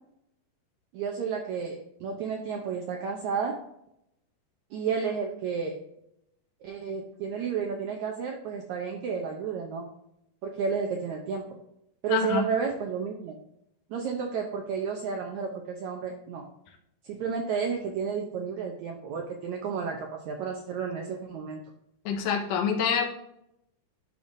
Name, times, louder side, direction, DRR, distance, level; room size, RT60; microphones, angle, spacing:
voice 1, 0.9-3.6 4.7-5.8 6.6-9.9 10.4-11.5 12.0-13.4 13.9-16.5 17.0-21.6, right 6 dB, 75° right, 2 dB, 1.7 m, -31 dB
voice 2, 12.1-12.4 22.1-23.0, left 7 dB, 70° left, 1 dB, 2.5 m, -26 dB
11.0 x 5.5 x 2.6 m, 0.79 s
omnidirectional pair, 4.2 m